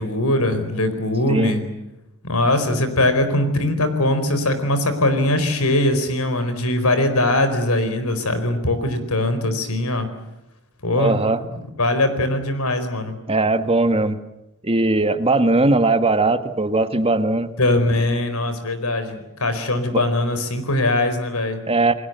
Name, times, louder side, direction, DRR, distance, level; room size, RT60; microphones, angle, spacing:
voice 1, 0.0-1.6 2.2-10.1 10.8-11.2 11.5-13.2 17.6-21.6, left 1 dB, 85° left, 10 dB, 4.5 m, -21 dB
voice 2, 11.0-11.4 13.3-14.2 14.6-17.5 19.9-20.0 21.7-21.9, right 2 dB, 25° right, 10 dB, 1.5 m, -19 dB
29.0 x 21.0 x 8.1 m, 0.94 s
head